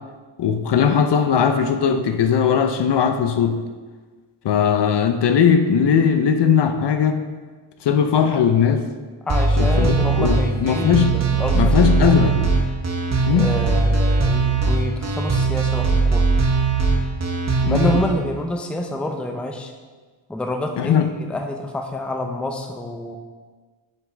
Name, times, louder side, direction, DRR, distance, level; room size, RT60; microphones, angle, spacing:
voice 1, 0.4-3.6 4.4-7.2 7.8-8.9 9.6-12.3 13.3-13.6 17.6-18.0 20.8-21.1, left 7 dB, 60° left, 7 dB, 0.6 m, -19 dB
voice 2, 9.3-12.5 13.3-16.2 17.7-19.7 20.3-23.2, left 1 dB, ahead, 3 dB, 0.5 m, -28 dB
sound 1, 9.3-18.0, right 4 dB, 35° right, 1.0 m, -19 dB
7.4 x 5.9 x 3.3 m, 1.4 s
wide cardioid pair, 115°, 49 cm